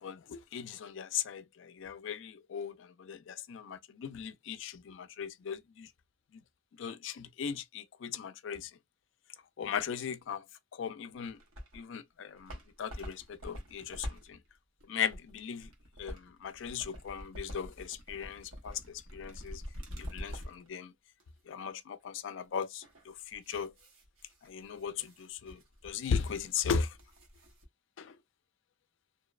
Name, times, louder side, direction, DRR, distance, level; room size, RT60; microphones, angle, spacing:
voice 1, 0.0-5.9 6.8-8.7 9.6-10.5 10.7-11.4 11.7-14.4 14.9-15.7 16.0-19.6 20.0-20.9 21.5-23.7 24.4-26.9 28.0-28.2, left 7 dB, 65° left, 0.3 m, -38 dB
sound 1, 11.2-11.9 12.2-20.7 21.2-21.3 22.8-27.6, equal, 85° right, 0.9 m, -46 dB
2.7 x 2.0 x 2.2 m
head